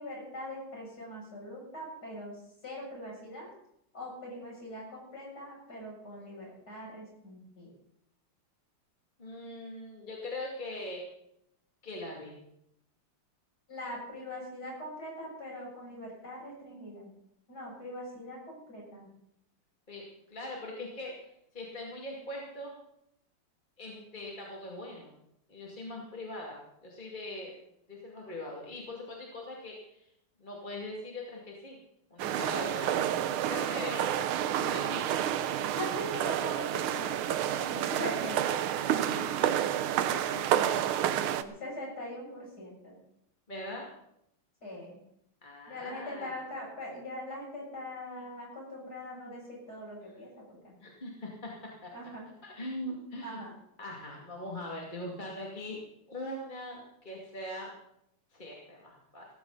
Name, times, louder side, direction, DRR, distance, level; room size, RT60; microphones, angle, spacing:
voice 1, 0.0-2.3 2.6-3.5 3.9-7.7 13.7-17.1 17.5-19.1 32.4-33.1 33.7-34.0 35.7-38.5 41.1-43.0 44.6-45.0 45.7-50.7 51.9-52.2 53.2-53.5, left 1 dB, 45° left, -3 dB, 7.8 m, -42 dB
voice 2, 9.2-11.0 11.8-12.3 19.9-22.8 23.8-25.1 25.5-27.6 27.9-30.1 30.4-31.8 32.1-33.1 33.5-34.2 34.6-35.2 39.0-39.6 39.9-41.0 43.5-43.9 45.4-46.4 50.8-51.9 52.4-53.4 53.8-55.8 56.1-57.7 58.3-59.3, left 1 dB, 20° left, -2 dB, 2.4 m, -41 dB
sound 1, 32.2-41.4, right 10 dB, 80° right, 1.6 m, -29 dB
17.5 x 14.5 x 4.0 m, 0.77 s
omnidirectional pair, 2.4 m